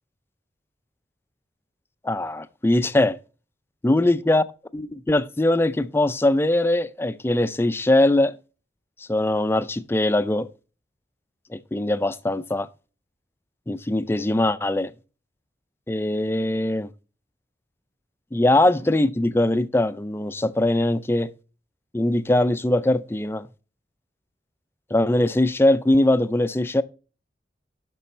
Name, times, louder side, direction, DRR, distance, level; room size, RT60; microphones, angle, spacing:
voice 1, 2.0-3.2 3.8-4.4 4.7-8.3 9.1-10.5 11.5-12.7 13.7-14.9 15.9-16.9 18.3-21.3 21.9-23.5 24.9-26.8, left 1 dB, 15° left, 0.4 m, -21 dB
7.0 x 6.1 x 4.3 m
head